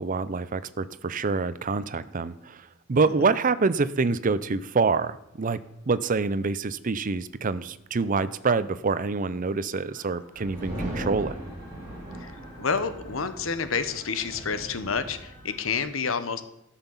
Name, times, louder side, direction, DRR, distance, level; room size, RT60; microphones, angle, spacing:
voice 1, 0.0-5.6 5.9-11.4, right 4 dB, 40° right, 15 dB, 0.6 m, -26 dB
sound 1, 5.2-15.8, equal, 15° left, 3.7 m, -57 dB
sound 2, 10.4-15.8, right 1 dB, 15° right, 5.0 m, -39 dB
voice 2, 12.2-16.4, left 5 dB, 80° left, 12 dB, 1.0 m, -29 dB
13.0 x 5.9 x 7.1 m, 0.81 s
head